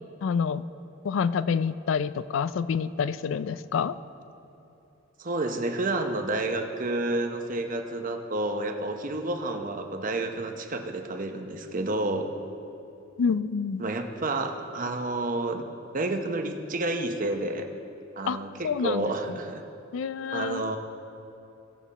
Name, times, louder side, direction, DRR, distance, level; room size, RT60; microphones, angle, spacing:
voice 1, 0.2-0.6 1.0-3.9 13.2-13.8 18.3-18.4 18.6-19.1 19.9-20.7, left 6 dB, 70° left, 15 dB, 0.3 m, -27 dB
voice 2, 5.2-12.3 13.8-15.7 15.9-17.7 18.1-19.6 20.3-20.8, right 2 dB, 40° right, 5 dB, 0.8 m, -30 dB
17.0 x 7.0 x 4.1 m, 3.0 s
head